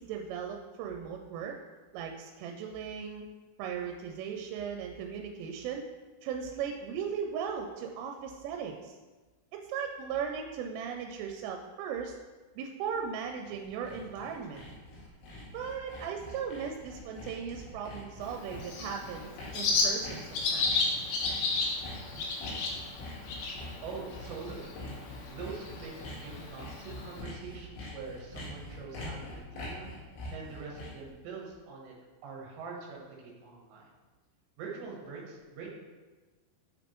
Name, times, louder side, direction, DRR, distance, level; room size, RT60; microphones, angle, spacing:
voice 1, 0.0-1.6 1.9-3.3 3.6-5.9 6.2-9.0 9.5-12.2 12.6-14.6 15.5-20.7, right 7 dB, 90° right, 3 dB, 3.1 m, -37 dB
Sawing, 13.3-31.1, left 1 dB, 65° left, 3.9 m, -44 dB
Bird, 18.2-27.2, left 3 dB, 90° left, 2.1 m, -34 dB
voice 2, 23.8-24.7 25.3-25.9 26.2-29.9 30.3-31.9 32.2-33.9 34.6-35.7, right 5 dB, 75° right, -2 dB, 3.1 m, -44 dB
7.7 x 5.1 x 3.0 m, 1.3 s
omnidirectional pair, 5.6 m